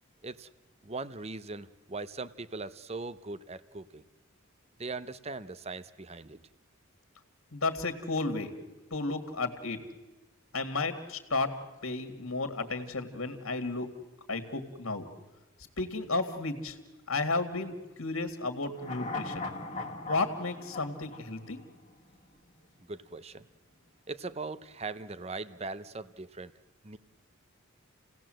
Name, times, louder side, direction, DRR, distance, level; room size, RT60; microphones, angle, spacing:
voice 1, 0.8-4.0 4.8-6.4 22.9-23.4 24.1-26.5 26.8-27.0, right 3 dB, 30° right, 15 dB, 0.7 m, -40 dB
voice 2, 7.5-8.5 8.9-9.8 10.5-11.5 11.8-13.9 14.3-15.1 15.8-16.8 17.1-17.7 18.0-19.5 20.1-21.6, left 3 dB, 70° left, 7 dB, 2.0 m, -33 dB
sound 1, 18.8-22.2 22.5-22.6, left 3 dB, 35° left, 1.6 m, -39 dB
29.0 x 17.5 x 7.7 m, 1.1 s
head